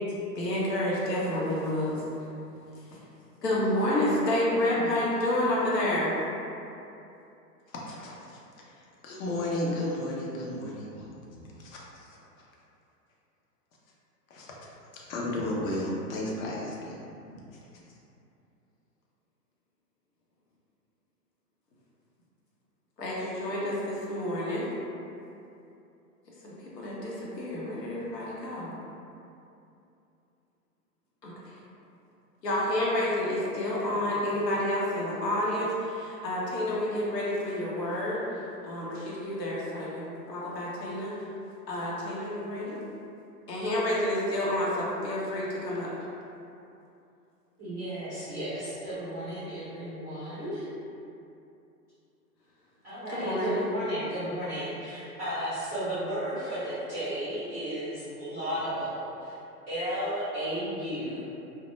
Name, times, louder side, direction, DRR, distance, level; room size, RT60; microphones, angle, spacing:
voice 1, 0.4-2.0 3.4-6.1 23.0-24.7 26.4-28.7 31.2-31.3 32.4-38.2 38.6-41.1 41.7-42.8 43.5-45.9 53.1-53.6, left 1 dB, 90° left, -6 dB, 0.8 m, -29 dB
voice 2, 7.9-8.4 9.0-12.2 14.3-14.5 15.1-17.0 17.3-17.4, left 1 dB, 55° left, -4 dB, 0.7 m, -33 dB
voice 3, 47.6-50.7 52.8-59.3 59.7-61.3, right 1 dB, 10° right, -14 dB, 0.4 m, -34 dB
2.1 x 2.1 x 2.9 m, 2.7 s
hypercardioid pair, 125°, 48 cm